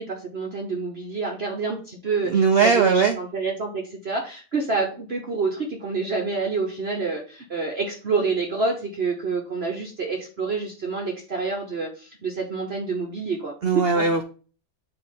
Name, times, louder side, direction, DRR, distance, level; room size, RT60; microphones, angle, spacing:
voice 1, 0.0-13.5 13.9-14.2, right 4 dB, 45° right, 1 dB, 1.0 m, -28 dB
voice 2, 2.3-3.2 13.6-14.2, right 5 dB, 80° right, 5 dB, 0.5 m, -19 dB
7.8 x 2.9 x 5.5 m, 0.38 s
omnidirectional pair, 1.8 m